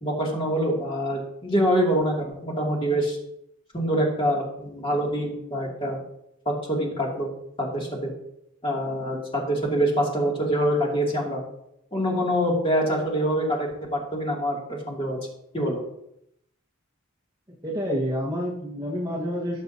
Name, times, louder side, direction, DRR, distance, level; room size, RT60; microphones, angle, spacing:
voice 1, 0.0-3.2 3.7-6.0 6.5-7.3 7.6-8.1 8.6-11.4 11.9-15.2 15.5-15.8, equal, 25° left, -3 dB, 2.4 m, -25 dB
voice 2, 17.6-19.6, equal, 15° right, -2 dB, 1.4 m, -28 dB
18.5 x 6.7 x 2.8 m, 0.78 s
head